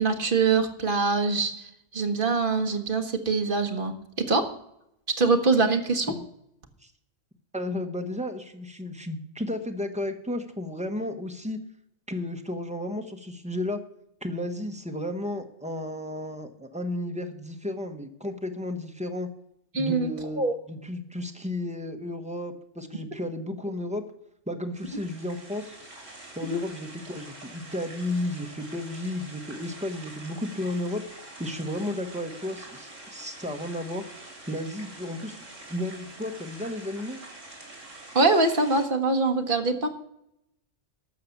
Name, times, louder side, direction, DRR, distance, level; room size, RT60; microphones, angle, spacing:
voice 1, 0.0-4.5 5.2-6.1 19.7-20.1 20.4-20.5 26.5-26.6 38.1-39.9, right 3 dB, 45° right, 5 dB, 1.5 m, -24 dB
voice 2, 7.5-11.6 12.1-13.8 14.2-19.3 19.8-20.4 20.7-24.0 24.5-25.8 26.4-31.0 31.4-34.0 34.5-35.4 35.7-37.2, left 1 dB, 5° right, 5 dB, 1.0 m, -33 dB
sound 1, 24.7-38.8, right 2 dB, 75° right, 3.7 m, -46 dB
12.5 x 6.7 x 7.1 m, 0.76 s
omnidirectional pair, 1.3 m